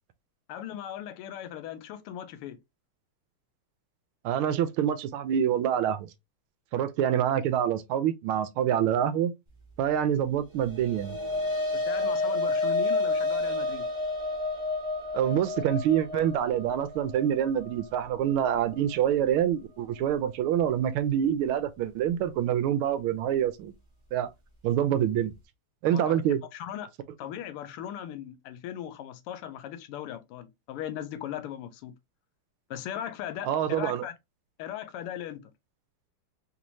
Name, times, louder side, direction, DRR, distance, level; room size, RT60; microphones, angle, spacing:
voice 1, 0.5-2.6 11.7-13.9 25.9-26.2 26.5-26.9 27.2-31.9 32.7-34.1 34.6-35.5, left 10 dB, 85° left, 1.5 m, -38 dB
voice 2, 4.2-6.1 6.7-9.3 9.8-11.2 15.1-23.7 24.1-24.3 24.6-25.3 25.8-26.4 33.4-34.0, right 10 dB, 80° right, 1.4 m, -26 dB
sound 1, 10.6-19.1, left 2 dB, 20° right, 0.8 m, -30 dB
3.7 x 3.0 x 2.6 m
omnidirectional pair, 2.4 m